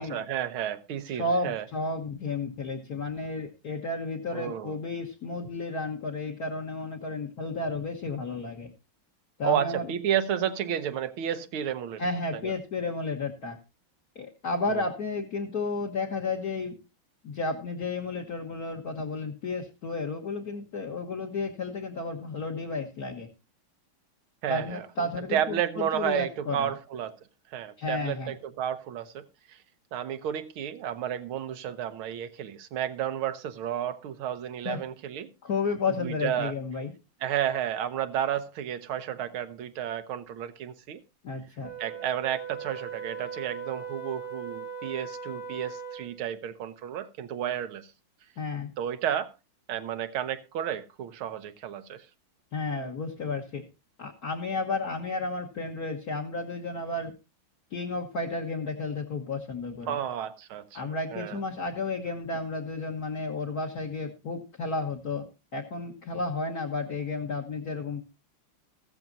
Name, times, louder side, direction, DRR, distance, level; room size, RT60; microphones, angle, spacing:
voice 1, 0.0-1.6 4.3-4.8 9.4-12.0 12.4-12.5 14.7-14.8 24.4-24.9 25.3-27.2 27.5-29.6 29.9-35.3 36.0-36.5 37.2-41.0 41.8-47.9 48.8-49.3 49.7-52.1 59.9-61.4, right 10 dB, 80° right, 1.8 m, -32 dB
voice 2, 1.1-8.7 9.4-9.9 12.0-13.6 14.1-16.8 17.2-23.3 24.5-26.7 27.8-28.3 34.6-34.8 35.4-36.9 41.2-41.7 48.4-48.7 52.5-53.6 54.0-57.1 57.7-60.0 60.7-65.3 65.5-68.0, left 3 dB, 50° left, 1.8 m, -32 dB
Wind instrument woodwind instrument, 41.6-46.3, right 6 dB, 80° left, 3.4 m, -39 dB
15.0 x 13.5 x 2.6 m
omnidirectional pair, 2.3 m